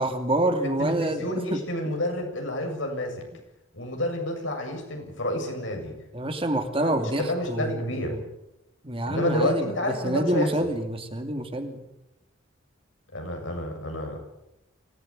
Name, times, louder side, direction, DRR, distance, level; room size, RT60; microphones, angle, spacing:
voice 1, 0.0-1.6 6.1-8.2 8.8-9.7 10.0-11.9, right 1 dB, 30° right, 6 dB, 2.6 m, -27 dB
voice 2, 0.8-3.2 3.7-5.9 6.8-8.2 9.1-10.5 13.1-14.2, left 1 dB, 75° left, 3 dB, 7.7 m, -29 dB
25.0 x 18.0 x 9.0 m, 0.90 s
head